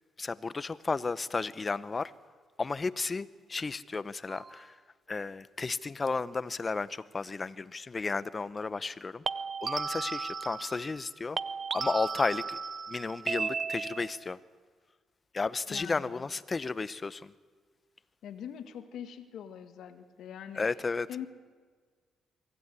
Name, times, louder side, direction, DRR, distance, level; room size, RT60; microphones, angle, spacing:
voice 1, 0.2-2.1 2.6-4.8 5.1-9.2 9.6-11.4 11.7-12.6 12.9-14.4 15.3-17.3 20.5-21.1, left 4 dB, 30° left, 17 dB, 0.8 m, -33 dB
sound 1, 4.3-4.6 9.3-11.1 11.4-14.2, right 5 dB, 40° right, 0.7 m, -35 dB
voice 2, 15.7-16.3 18.2-20.7 21.1-21.3, left 9 dB, 75° left, 9 dB, 1.8 m, -43 dB
23.5 x 15.5 x 9.8 m, 1.5 s
cardioid pair, 90°, 0 cm